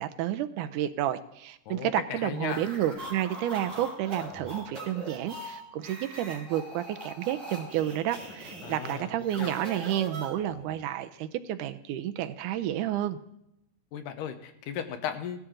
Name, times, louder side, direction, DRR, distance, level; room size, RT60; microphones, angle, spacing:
voice 1, 0.0-13.2, right 12 dB, 80° right, 9 dB, 2.0 m, -30 dB
voice 2, 1.7-2.6 8.6-9.6 13.9-15.4, left 8 dB, 80° left, 8 dB, 2.5 m, -36 dB
sound 1, 2.4-10.7, right 1 dB, 35° right, 4.9 m, -42 dB
17.0 x 12.5 x 3.8 m, 0.81 s
omnidirectional pair, 3.8 m